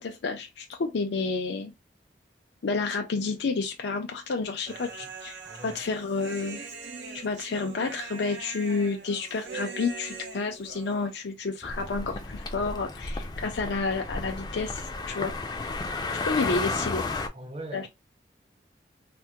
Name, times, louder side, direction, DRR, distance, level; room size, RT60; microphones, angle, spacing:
voice 1, 0.0-1.7 2.6-6.6 7.1-15.3 16.3-17.0 17.7-17.8, left 4 dB, 85° left, 0.5 m, -30 dB
voice 2, 4.7-5.1 5.4-5.8 16.4-16.6 16.8-17.0 17.3-17.9, right 2 dB, 35° right, 0.6 m, -42 dB
Human voice, 4.7-11.1, right 4 dB, 90° right, 0.8 m, -42 dB
sound 1, 11.6-17.3, left 3 dB, 25° left, 0.4 m, -33 dB
3.3 x 2.1 x 2.8 m
head